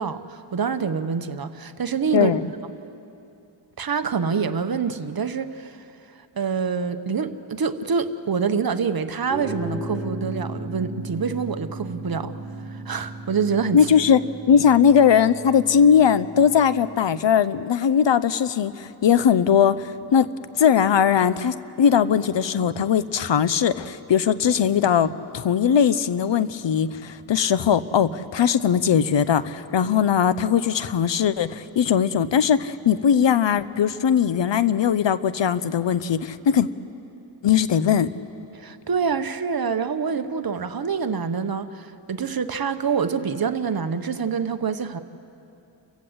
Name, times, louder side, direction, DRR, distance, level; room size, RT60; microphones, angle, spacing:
voice 1, 0.0-2.3 3.8-5.8 6.4-12.3 12.7-13.8 38.5-45.0, right 6 dB, 50° right, 10 dB, 1.0 m, -26 dB
sound 1, 9.3-17.0, right 1 dB, 10° left, 5.4 m, -36 dB
voice 2, 13.7-14.2 14.5-20.3 20.6-36.7 37.4-38.1, left 8 dB, 70° left, 14 dB, 0.8 m, -19 dB
29.5 x 15.5 x 8.0 m, 2.8 s
wide cardioid pair, 110°, 46 cm